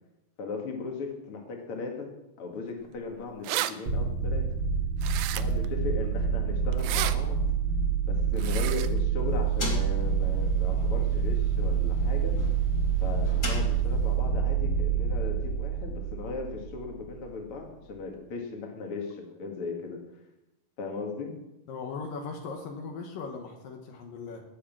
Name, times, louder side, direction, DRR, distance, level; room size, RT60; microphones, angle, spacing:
voice 1, 0.4-2.1 2.4-4.5 5.3-7.4 8.0-12.4 13.0-20.0 20.8-21.3, left 4 dB, 45° left, 2 dB, 2.3 m, -37 dB
sound 1, 3.0-3.1 3.2-3.7 5.0-5.7 6.7-7.1 8.4-8.9, right 14 dB, 80° right, 2.4 m, -31 dB
sound 2, 3.9-17.2, right 6 dB, 45° right, 1.7 m, -27 dB
sound 3, 9.2-14.3, left 2 dB, 25° left, 2.0 m, -40 dB
voice 2, 21.7-24.4, left 4 dB, 70° left, 3 dB, 2.8 m, -38 dB
18.5 x 6.5 x 6.0 m, 0.96 s
omnidirectional pair, 4.3 m